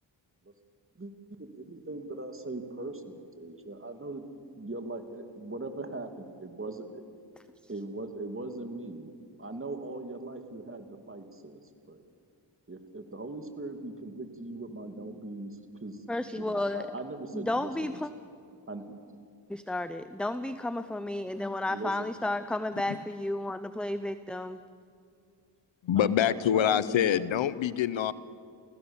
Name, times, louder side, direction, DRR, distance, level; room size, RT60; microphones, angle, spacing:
voice 1, 1.4-4.2 4.6-7.0 7.7-9.1 9.4-11.6 11.9-12.0 12.7-16.0 16.4-18.0 18.7-19.0 21.7-22.1 25.9-27.1, right 2 dB, 30° right, 6 dB, 2.6 m, -40 dB
voice 2, 16.1-16.9 17.3-18.1 19.5-24.6, left 1 dB, ahead, 11 dB, 0.7 m, -32 dB
voice 3, 25.8-28.1, left 10 dB, 80° left, 17 dB, 0.8 m, -25 dB
29.0 x 15.5 x 7.2 m, 2.3 s
cardioid pair, 60°, 45 cm